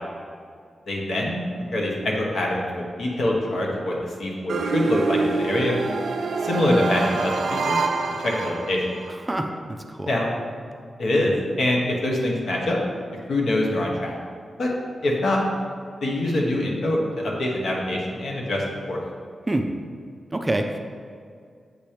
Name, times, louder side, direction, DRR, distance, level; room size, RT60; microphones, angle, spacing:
voice 1, 0.9-1.4 1.7-5.8 6.4-7.8 8.2-8.9 10.1-10.3 11.0-11.3 11.6-12.8 13.3-14.1 14.6-14.7 15.0-15.4 16.0-19.0, left 1 dB, 70° left, -2 dB, 1.2 m, -24 dB
sound 1, 4.5-9.1, right 3 dB, 90° right, 0.4 m, -26 dB
voice 2, 20.3-20.8, right 1 dB, 20° right, 5 dB, 0.4 m, -25 dB
7.9 x 2.9 x 5.0 m, 2.2 s
wide cardioid pair, 100°, 0 cm